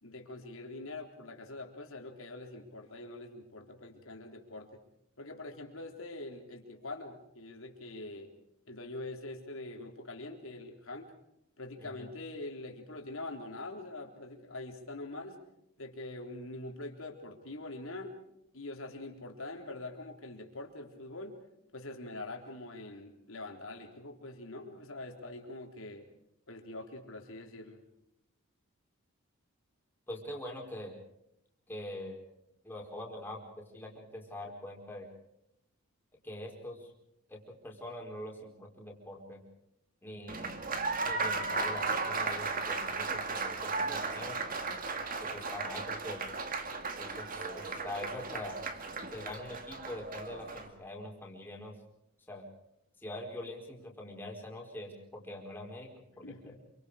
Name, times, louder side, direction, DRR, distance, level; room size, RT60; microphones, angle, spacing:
voice 1, 0.0-4.7 5.2-8.3 8.7-11.1 11.6-15.4 15.8-18.2 18.5-21.4 21.7-26.1 26.5-27.8 56.2-56.6, left 2 dB, 70° left, 2 dB, 3.7 m, -44 dB
voice 2, 30.1-30.9 31.7-32.2 32.6-35.1 36.2-36.9 37.3-39.4 40.0-40.6 41.0-44.4 45.2-46.2 47.0-48.6 49.1-51.8 52.3-52.5 53.0-56.6, left 1 dB, 10° left, -1 dB, 4.5 m, -44 dB
Applause, 40.3-50.7, right 4 dB, 40° right, 2.2 m, -35 dB
27.5 x 25.0 x 5.0 m, 0.79 s
head